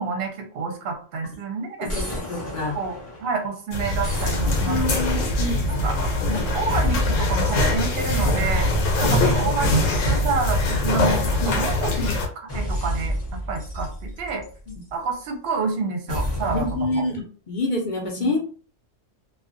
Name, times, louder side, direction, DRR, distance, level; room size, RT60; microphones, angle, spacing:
voice 1, 0.0-1.9 2.7-4.8 5.2-5.4 5.7-8.7 9.0-11.9 12.5-13.1 13.5-13.9 14.2-14.4 14.9-16.7 16.9-17.0 18.2-18.3, right 4 dB, 60° right, 3 dB, 0.8 m, -28 dB
voice 2, 1.8-2.7 4.7-5.9 6.3-6.5 9.0-9.2 11.4-11.6 12.0-12.2 14.7-14.8 16.5-18.4, left 2 dB, 50° left, -1 dB, 0.6 m, -27 dB
sound 1, 1.9-3.5 4.0-6.4 6.7-7.5 8.1-9.1 9.9-11.8 12.5-14.9 16.1-16.8, equal, 15° left, 0.7 m, -29 dB
sound 2, 3.7-12.3, left 1 dB, 80° left, 1.1 m, -23 dB
2.4 x 2.2 x 2.5 m, 0.41 s
omnidirectional pair, 1.3 m